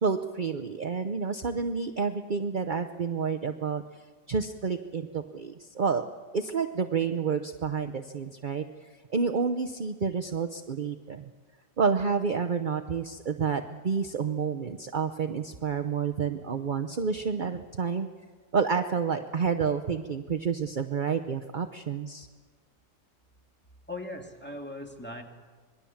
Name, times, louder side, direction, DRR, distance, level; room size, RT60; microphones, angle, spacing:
voice 1, 0.0-3.8 4.3-6.0 6.3-8.6 9.1-11.3 11.8-18.1 18.5-22.3, right 5 dB, 45° right, 6 dB, 0.6 m, -29 dB
voice 2, 23.9-25.2, left 2 dB, 5° left, 2 dB, 2.3 m, -39 dB
26.0 x 21.5 x 7.2 m, 1.5 s
omnidirectional pair, 1.8 m